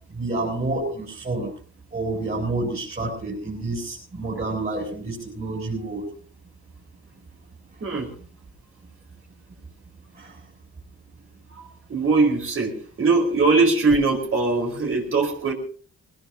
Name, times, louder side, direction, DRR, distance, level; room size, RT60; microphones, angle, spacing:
voice 1, 0.1-1.5 1.9-6.1 10.1-10.4, right 2 dB, 30° right, -3 dB, 7.0 m, -29 dB
voice 2, 11.9-15.5, right 3 dB, 45° right, 1 dB, 5.0 m, -21 dB
21.0 x 20.5 x 2.9 m, 0.44 s
cardioid pair, 90°, 30 cm